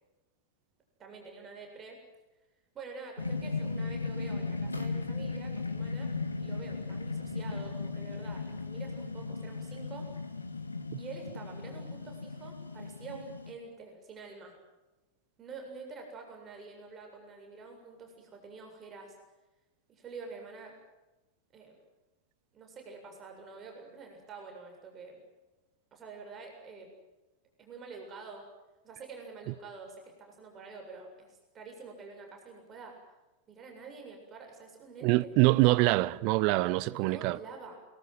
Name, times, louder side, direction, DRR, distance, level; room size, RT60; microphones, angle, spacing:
voice 1, 1.0-2.0 2.7-6.1 6.4-10.1 11.0-14.5 15.4-19.2 19.9-20.8 21.5-21.8 22.5-25.2 25.9-26.9 27.6-28.4 28.8-33.0 33.5-35.3 36.9-37.8, right 4 dB, 25° right, 7.3 m, -47 dB
sound 1, 3.2-13.5, left 3 dB, 80° left, 2.3 m, -36 dB
voice 2, 35.0-37.4, right 20 dB, 45° right, 0.9 m, -24 dB
29.0 x 21.0 x 7.9 m
figure-of-eight pair, 90°, 0 cm